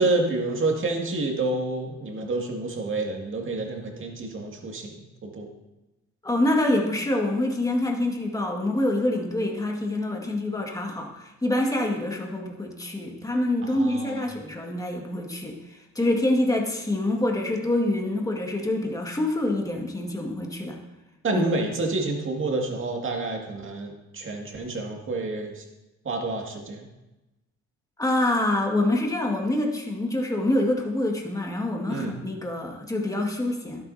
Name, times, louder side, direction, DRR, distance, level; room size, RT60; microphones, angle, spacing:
voice 1, 0.0-5.5 13.6-14.2 21.2-25.6 26.0-26.9 31.9-32.1, right 2 dB, 40° right, 1 dB, 2.2 m, -28 dB
voice 2, 6.2-15.6 16.0-20.8 21.3-21.5 28.0-33.8, left 1 dB, 10° left, 0 dB, 1.9 m, -26 dB
11.5 x 11.0 x 2.8 m, 1.0 s
cardioid pair, 90°, 30 cm